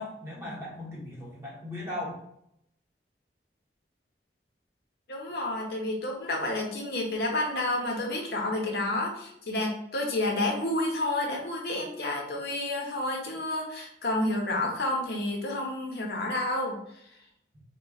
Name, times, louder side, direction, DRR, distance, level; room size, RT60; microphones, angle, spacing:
voice 1, 0.0-2.2, left 1 dB, 15° right, -5 dB, 1.1 m, -37 dB
voice 2, 5.1-16.8, left 1 dB, 60° left, 0 dB, 0.8 m, -30 dB
3.8 x 2.2 x 3.9 m, 0.75 s
head